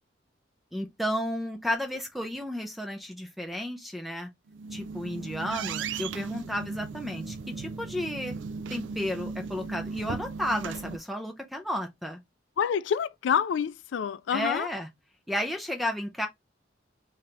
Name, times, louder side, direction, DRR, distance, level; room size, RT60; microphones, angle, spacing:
voice 1, 0.7-4.3 4.7-8.3 8.7-12.2 14.3-14.9 15.3-16.3, left 1 dB, ahead, 0.4 m, -32 dB
sound 1, 4.5-11.0, right 4 dB, 85° right, 0.4 m, -37 dB
voice 2, 12.6-14.7, left 8 dB, 80° left, 0.3 m, -27 dB
3.2 x 2.8 x 3.8 m
head